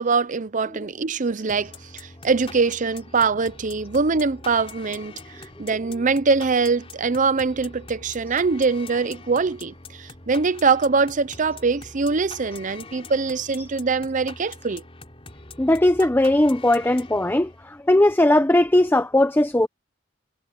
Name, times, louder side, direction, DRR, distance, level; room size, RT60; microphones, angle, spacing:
voice 1, 0.0-14.8, right 4 dB, 45° right, 0.7 m, -23 dB
sound 1, 1.5-17.8, left 3 dB, 30° left, 3.3 m, -43 dB
voice 2, 15.6-19.7, left 1 dB, 10° left, 0.7 m, -19 dB
head